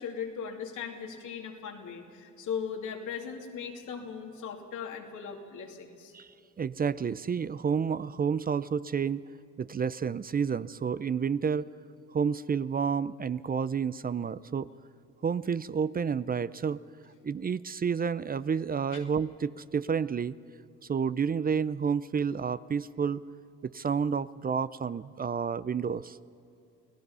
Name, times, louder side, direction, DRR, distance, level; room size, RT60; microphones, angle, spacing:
voice 1, 0.0-6.1 18.9-19.0, left 7 dB, 80° left, 2 dB, 2.8 m, -38 dB
voice 2, 6.6-9.2 9.6-11.7 12.1-14.7 15.2-16.8 17.2-20.3 20.9-23.2 23.7-26.2, right 6 dB, 30° right, 16 dB, 0.5 m, -30 dB
29.5 x 17.5 x 5.6 m, 2.7 s
cardioid pair, 90°, 30 cm